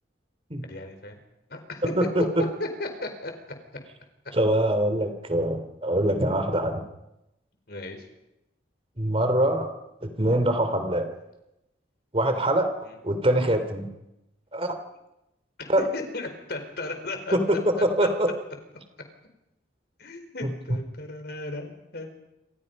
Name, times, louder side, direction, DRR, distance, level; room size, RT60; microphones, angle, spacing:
voice 1, 0.7-1.2 1.5-1.8 2.6-3.3 7.7-8.0 12.8-13.0 15.6-18.1 20.0-22.1, left 2 dB, 55° left, 6 dB, 4.6 m, -36 dB
voice 2, 2.0-2.4 4.3-6.8 9.0-9.7 10.0-11.1 12.1-12.7 13.0-13.9 14.5-14.7 15.7-15.8 17.3-18.3 20.4-20.5, right 1 dB, 30° right, 8 dB, 3.1 m, -23 dB
28.0 x 26.5 x 5.5 m, 0.90 s
head